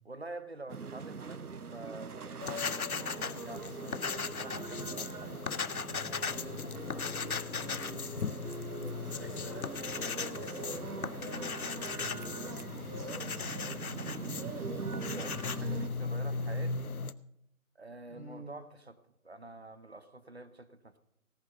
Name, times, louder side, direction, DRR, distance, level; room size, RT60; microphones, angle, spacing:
voice 1, 0.0-5.3 5.6-7.3 15.0-17.0 17.7-19.0 19.2-21.0, right 2 dB, 45° right, 12 dB, 0.9 m, -48 dB
sound 1, 0.7-15.9, right 5 dB, 80° right, 0.7 m, -42 dB
sound 2, 2.4-17.1, left 5 dB, 75° left, 0.7 m, -37 dB
voice 2, 8.7-12.4 12.7-14.1 18.1-18.5, left 1 dB, 10° left, -6 dB, 3.2 m, -46 dB
17.5 x 7.6 x 5.7 m, 0.76 s
figure-of-eight pair, 165°, 44 cm